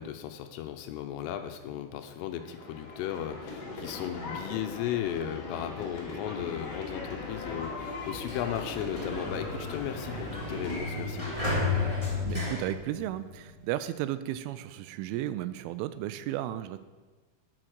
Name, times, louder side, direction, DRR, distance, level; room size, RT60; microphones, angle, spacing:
voice 1, 0.0-11.5, left 10 dB, 85° left, 7 dB, 3.3 m, -36 dB
sound 1, 2.3-10.8, left 3 dB, 40° left, 2.7 m, -39 dB
Sliding door, 8.0-13.6, left 3 dB, 10° right, 2.4 m, -33 dB
voice 2, 12.2-16.8, right 13 dB, 85° right, 13 dB, 2.9 m, -34 dB
11.5 x 8.9 x 6.4 m, 1.3 s
omnidirectional pair, 5.9 m